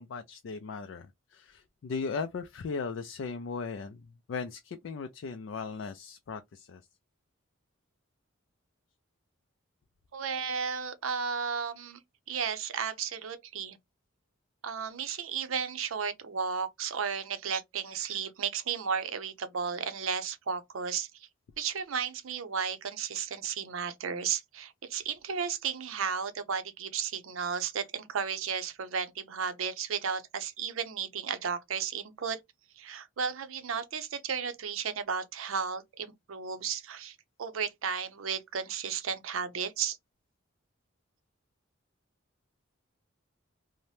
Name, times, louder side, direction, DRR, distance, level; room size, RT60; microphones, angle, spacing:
voice 1, 0.0-4.0 4.3-6.8, left 5 dB, 60° left, 0.3 m, -37 dB
voice 2, 10.1-12.0 12.3-13.8 14.6-21.3 21.6-32.4 32.8-40.0, right 6 dB, 80° right, 0.5 m, -34 dB
2.7 x 2.1 x 3.1 m
head